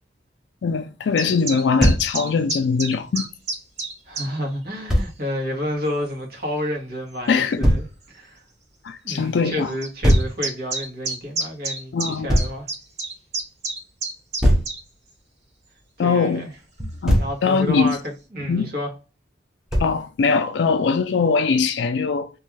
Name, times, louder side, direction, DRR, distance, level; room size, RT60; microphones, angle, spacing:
voice 1, 0.6-3.3 7.3-7.6 8.8-9.7 11.9-12.3 16.0-16.4 17.0-18.0 18.5-18.7 19.8-22.3, left 5 dB, 70° left, 0.4 m, -21 dB
sound 1, 1.2-4.3 5.0-5.2 6.1-6.2 7.3-7.4 7.7-7.8 8.0-8.1 9.8-14.8, right 3 dB, 35° right, 1.0 m, -29 dB
Thump thud, 1.8-2.1 4.9-5.1 7.6-7.9 10.0-10.4 12.3-12.6 14.4-14.7 16.8-17.4 19.7-20.0, equal, 5° right, 0.6 m, -19 dB
voice 2, 4.1-8.4 9.0-12.7 16.0-16.5 17.2-18.9, equal, 55° right, 1.1 m, -30 dB
2.5 x 2.3 x 3.1 m
head